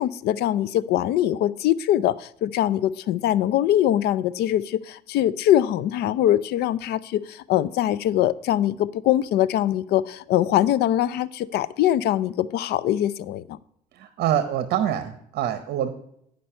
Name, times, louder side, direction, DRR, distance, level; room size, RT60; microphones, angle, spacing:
voice 1, 0.0-13.6, left 12 dB, 75° left, 0.5 m, -22 dB
voice 2, 14.0-15.9, right 10 dB, 70° right, 0.8 m, -25 dB
10.0 x 5.3 x 4.4 m
cardioid pair, 110°, 17 cm